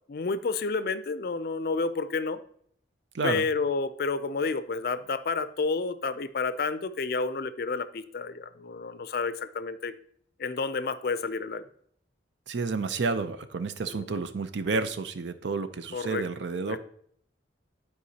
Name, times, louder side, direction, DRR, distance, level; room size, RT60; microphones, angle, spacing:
voice 1, 0.1-2.4 3.2-9.9 10.4-11.6 13.9-14.2 15.9-16.2 16.6-16.8, left 4 dB, 50° left, 13 dB, 0.4 m, -30 dB
voice 2, 3.1-3.5 12.5-16.8, right 4 dB, 70° right, 11 dB, 0.5 m, -30 dB
11.5 x 4.8 x 2.8 m, 0.65 s
head